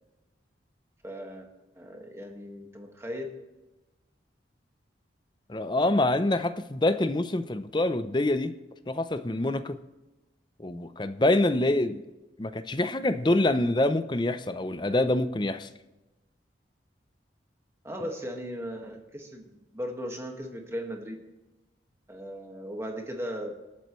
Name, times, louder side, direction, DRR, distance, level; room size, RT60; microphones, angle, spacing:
voice 1, 1.0-1.5 1.8-3.3 17.8-21.2 22.1-23.6, equal, 15° right, 1.7 m, -37 dB
voice 2, 5.5-8.5 8.9-9.8 10.6-12.0 12.4-15.7, left 2 dB, 25° left, 0.6 m, -26 dB
26.5 x 8.9 x 3.2 m
head